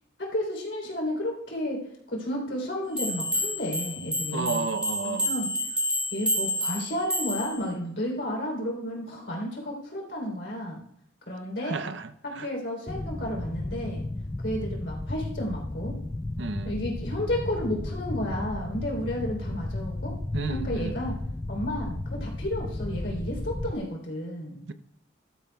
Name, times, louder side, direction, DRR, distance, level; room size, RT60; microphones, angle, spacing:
voice 1, 0.2-1.8 2.1-4.7 5.0-5.8 6.1-10.8 11.3-11.8 12.2-14.0 14.4-16.0 16.6-20.1 20.5-21.2 21.5-24.6, left 1 dB, 70° left, -1 dB, 3.4 m, -32 dB
sound 1, 3.0-7.6, equal, 5° right, 3.4 m, -29 dB
voice 2, 4.3-5.3 11.6-12.1 12.4-12.5 16.4-16.7 20.3-20.9 24.7-24.8, right 4 dB, 75° right, 10 dB, 0.6 m, -31 dB
sound 2, 12.9-23.7, left 2 dB, 15° left, 0.3 m, -33 dB
15.5 x 12.5 x 2.3 m, 0.69 s
head